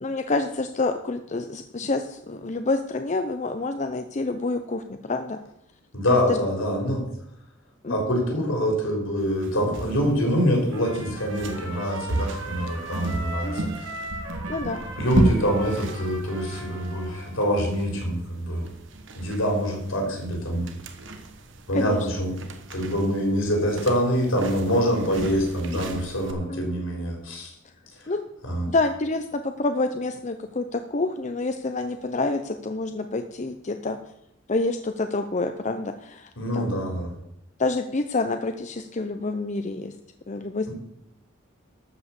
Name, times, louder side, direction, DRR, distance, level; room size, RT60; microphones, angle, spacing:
voice 1, 0.0-5.4 6.1-6.4 7.8-8.0 13.4-13.7 14.5-14.8 21.7-22.1 26.5-26.6 28.1-28.3 28.7-34.0 34.5-36.7 37.6-39.9 40.3-40.7, left 3 dB, 35° left, 7 dB, 0.5 m, -28 dB
voice 2, 5.9-7.0 7.9-13.6 15.0-18.7 19.2-20.6 21.7-22.4 22.7-27.5 28.0-28.1 28.4-28.7 36.4-37.1 40.7-40.8, equal, 75° left, 1 dB, 4.0 m, -25 dB
sound 1, 9.2-26.3, right 2 dB, 60° right, 1.3 m, -34 dB
Trumpet, 10.7-17.4, right 1 dB, 80° right, 2.3 m, -38 dB
12.5 x 5.6 x 7.3 m, 0.78 s
head